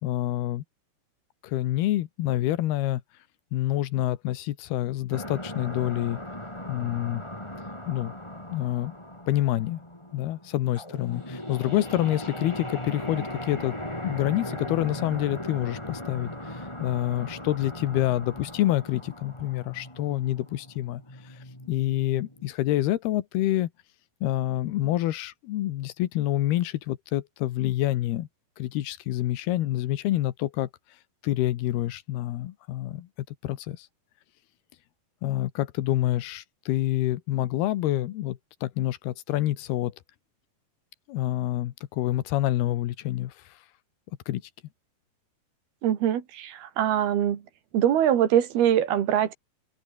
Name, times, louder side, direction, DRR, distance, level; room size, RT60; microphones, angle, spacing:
voice 1, 0.0-0.6 1.4-3.0 3.5-6.2 6.7-7.2 7.9-8.1 8.5-8.9 9.3-9.8 10.1-13.8 14.0-21.0 21.7-23.7 24.2-28.3 28.6-30.7 31.2-33.1 33.4-33.9 35.2-39.9 41.1-43.3 44.3-44.4, left 14 dB, 80° left, 3.2 m, -27 dB
sound 1, 5.1-22.5, left 1 dB, 5° left, 4.9 m, -38 dB
voice 2, 45.8-47.4 47.7-49.3, right 10 dB, 75° right, 4.2 m, -23 dB
open air
omnidirectional pair, 4.5 m